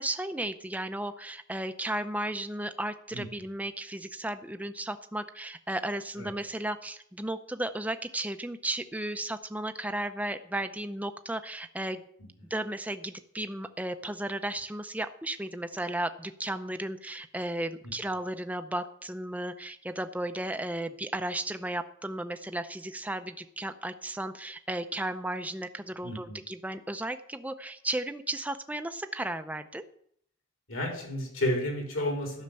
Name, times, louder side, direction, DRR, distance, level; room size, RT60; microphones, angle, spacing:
voice 1, 0.0-12.1 12.5-29.8, right 1 dB, 5° right, 9 dB, 0.6 m, -34 dB
voice 2, 26.0-26.4 30.7-32.4, left 1 dB, 70° left, 2 dB, 4.0 m, -31 dB
12.5 x 6.5 x 9.0 m, 0.68 s
head